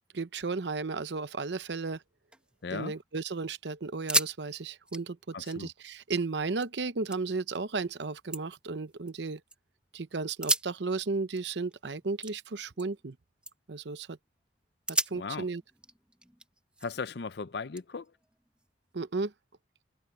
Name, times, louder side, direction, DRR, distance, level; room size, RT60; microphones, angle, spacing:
voice 1, 0.2-2.0 2.7-9.4 9.9-13.2 13.7-14.2 15.1-15.6 18.9-19.3, right 4 dB, 65° right, 0.8 m, -34 dB
sound 1, 2.1-3.1 3.4-3.5 3.9-4.4 4.7-6.7 7.1-7.6 8.0-9.6 10.3-13.1 13.4-13.8 14.3-14.4 14.9-17.1 17.8-18.9, right 2 dB, 5° right, 0.9 m, -36 dB
voice 2, 2.6-2.9 5.3-5.7 15.1-15.5 16.8-18.1, left 4 dB, 60° left, 0.5 m, -37 dB
head